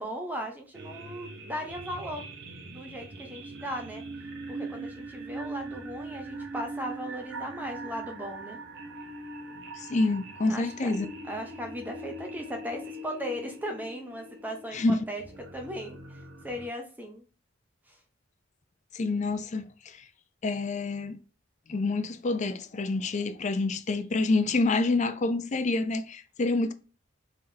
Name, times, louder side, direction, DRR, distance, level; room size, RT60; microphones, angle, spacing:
voice 1, 0.0-2.3 2.6-4.0 4.5-8.6 10.5-10.9 11.2-15.2 15.5-17.2 17.9-18.0, equal, 10° right, 0.6 m, -37 dB
sound 1, 0.7-16.7, right 2 dB, 60° right, 0.8 m, -42 dB
voice 2, 9.8-11.1 14.7-15.0 18.9-19.6 20.4-21.2 21.7-26.7, left 3 dB, 35° left, 0.4 m, -27 dB
3.5 x 3.5 x 2.7 m
head